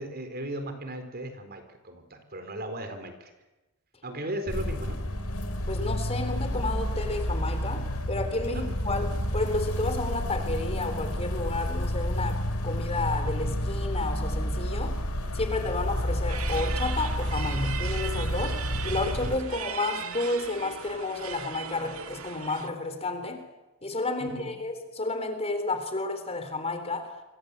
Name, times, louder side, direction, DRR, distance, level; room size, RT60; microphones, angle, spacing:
voice 1, 0.0-3.3 4.0-5.0 8.5-8.8 24.2-24.5, right 1 dB, 45° right, 8 dB, 4.2 m, -37 dB
sound 1, 4.5-19.4, equal, 85° left, 4.3 m, -30 dB
voice 2, 5.7-9.1 9.3-15.0 15.3-23.4 23.8-27.1, left 2 dB, 30° left, 8 dB, 3.8 m, -31 dB
sound 2, 16.3-22.7, right 8 dB, 70° right, 2.0 m, -38 dB
28.5 x 24.0 x 8.3 m, 1.1 s
head